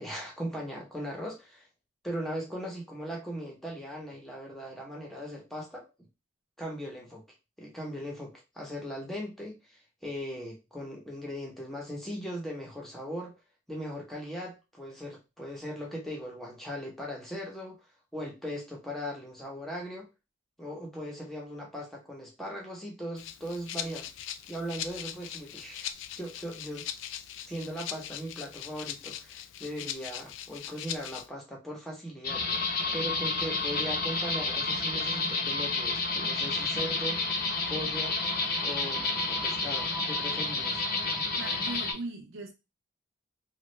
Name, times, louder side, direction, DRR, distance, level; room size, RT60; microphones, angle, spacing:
voice 1, 0.0-1.7 2.0-6.1 6.6-7.2 7.6-13.3 13.7-17.8 18.1-20.1 20.6-24.1 24.5-26.9 27.5-37.2 37.7-38.2 38.6-40.8, equal, ahead, 0.9 m, -39 dB
Rattle (instrument), 23.2-31.3, left 10 dB, 75° left, 0.3 m, -40 dB
sound 1, 32.2-41.9, left 3 dB, 50° left, 0.7 m, -30 dB
voice 2, 41.4-42.5, right 2 dB, 80° right, 0.6 m, -39 dB
3.1 x 2.4 x 3.1 m
head